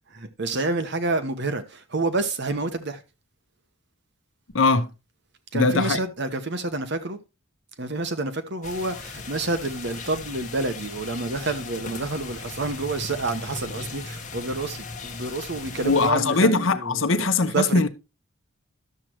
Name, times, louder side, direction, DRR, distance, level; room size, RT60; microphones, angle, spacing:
voice 1, 0.1-3.0 5.5-7.2 7.8-17.8, right 3 dB, 55° right, 1.0 m, -29 dB
voice 2, 4.5-4.9 5.5-6.0 15.8-17.9, left 3 dB, 60° left, 0.9 m, -21 dB
sound 1, 8.6-16.1, left 4 dB, 35° left, 1.3 m, -38 dB
12.0 x 7.5 x 3.0 m
head